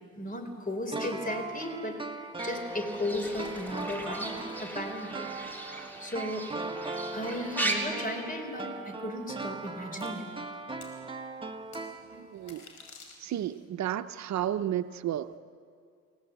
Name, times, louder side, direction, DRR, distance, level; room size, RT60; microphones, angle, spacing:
voice 1, 0.2-2.0 2.4-5.3 6.0-6.5 7.1-10.3 12.5-12.6, left 1 dB, 30° left, 7 dB, 3.9 m, -35 dB
sound 1, 0.9-12.6 12.8-12.9, right 3 dB, 15° right, 1.4 m, -39 dB
Fowl / Bird, 2.4-7.8, right 1 dB, 5° left, 3.7 m, -38 dB
sound 2, 10.0-10.1 10.8-11.0 11.7-11.8 12.4-13.6, left 5 dB, 75° left, 5.2 m, -50 dB
voice 2, 12.1-12.7 13.2-15.4, right 11 dB, 65° right, 10 dB, 0.7 m, -32 dB
29.0 x 16.5 x 8.1 m, 2.2 s
cardioid pair, 90°, 30 cm